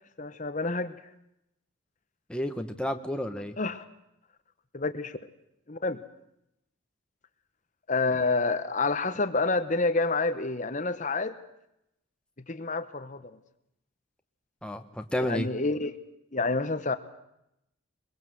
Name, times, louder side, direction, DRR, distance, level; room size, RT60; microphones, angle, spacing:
voice 1, 0.2-0.9 3.6-3.8 4.7-5.2 5.7-6.0 7.9-11.4 12.5-13.4 15.2-15.9 16.3-17.0, left 3 dB, 35° left, 10 dB, 1.1 m, -28 dB
voice 2, 2.3-3.6 14.6-15.5, left 1 dB, 5° left, 6 dB, 1.2 m, -31 dB
22.5 x 22.0 x 7.9 m, 0.83 s
head